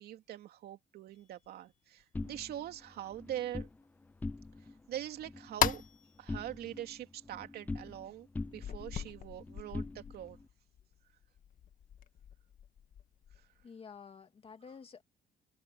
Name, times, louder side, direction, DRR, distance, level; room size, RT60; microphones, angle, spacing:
voice 1, 0.0-3.7 4.9-5.8 6.2-10.4, right 12 dB, 70° right, 2.8 m, -43 dB
hitting a dinner fork on a counter, 1.1-1.5 2.0-2.1 2.5-2.6 3.1-3.8 4.2-4.3 4.8-4.9 5.3-6.5 7.0-7.1 7.6-7.7 8.1-8.2 8.6-13.6, left 9 dB, 50° left, 1.7 m, -39 dB
sound 1, 2.1-3.7 4.1-4.8 5.0-6.0 6.3-8.1 8.3-10.4, left 3 dB, 10° left, 0.4 m, -42 dB
voice 2, 13.6-15.0, left 6 dB, 35° left, 2.5 m, -50 dB
cardioid pair, 110°, 17 cm